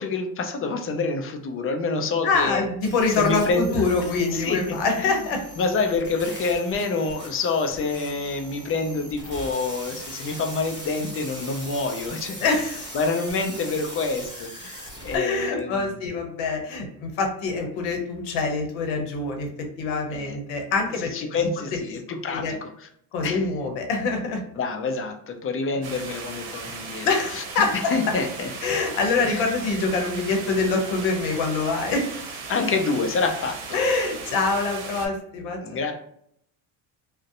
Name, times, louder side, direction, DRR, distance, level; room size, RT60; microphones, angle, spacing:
voice 1, 0.0-2.6 3.2-3.8 4.3-5.2 5.6-12.4 12.9-16.0 20.1-20.4 21.1-22.5 23.2-23.4 24.6-27.1 27.3-27.4 27.9-28.5 29.2-29.4 32.5-33.6 35.6-35.9, left 4 dB, 30° left, 4 dB, 0.4 m, -27 dB
voice 2, 2.2-5.4 12.4-12.9 15.1-21.5 21.9-22.0 22.3-22.5 23.1-24.4 27.0-28.1 28.6-32.1 33.7-35.9, left 3 dB, 75° left, 3 dB, 0.8 m, -25 dB
sound 1, 2.8-15.2, equal, 20° right, 1.0 m, -40 dB
sound 2, 25.8-35.1, right 4 dB, 65° right, 0.8 m, -37 dB
2.5 x 2.1 x 2.4 m, 0.70 s
supercardioid pair, 90°, 48 cm